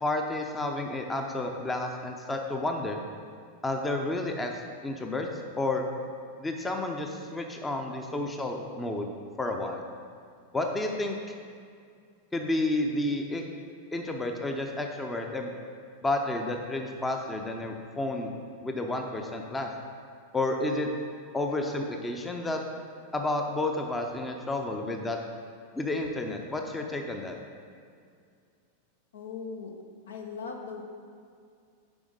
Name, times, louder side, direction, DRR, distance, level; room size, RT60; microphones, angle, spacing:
voice 1, 0.0-3.0 3.6-5.3 5.6-5.9 6.4-9.1 9.4-9.8 10.5-11.3 12.3-13.4 13.9-15.5 16.0-18.3 18.6-19.7 20.3-20.9 21.3-22.6 23.1-25.2 25.7-27.4, left 2 dB, 10° left, 3 dB, 0.7 m, -31 dB
voice 2, 29.1-29.7 30.1-30.8, left 5 dB, 65° left, 2 dB, 0.9 m, -39 dB
7.1 x 5.0 x 5.2 m, 2.2 s
figure-of-eight pair, 90°, 0 cm